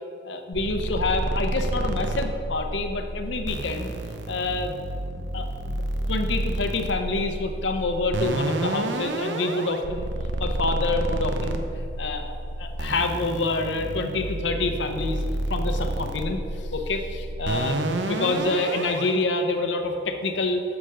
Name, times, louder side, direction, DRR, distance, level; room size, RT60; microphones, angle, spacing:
voice 1, 0.2-3.9 4.3-4.8 5.3-10.1 10.4-11.6 12.0-15.2 15.5-20.6, left 3 dB, 85° left, 6 dB, 0.7 m, -27 dB
sound 1, 0.5-19.1, right 1 dB, 85° right, 0.7 m, -30 dB
9.5 x 6.9 x 3.8 m, 2.5 s
head